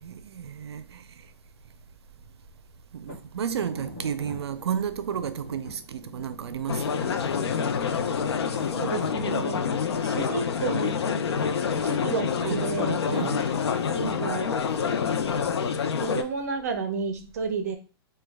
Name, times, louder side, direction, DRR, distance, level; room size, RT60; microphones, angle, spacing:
voice 1, 0.0-1.3 2.9-7.2 12.4-12.8 13.1-13.5, right 8 dB, 85° right, 0.4 m, -32 dB
sound 1, 3.0-9.3, equal, 45° left, 1.4 m, -45 dB
sound 2, 6.7-16.2, left 6 dB, 85° left, 0.5 m, -27 dB
voice 2, 8.7-11.0 11.8-13.1 13.9-14.5 16.0-17.8, right 5 dB, 40° right, 0.6 m, -31 dB
3.0 x 2.2 x 3.4 m
hypercardioid pair, 180°, 13 cm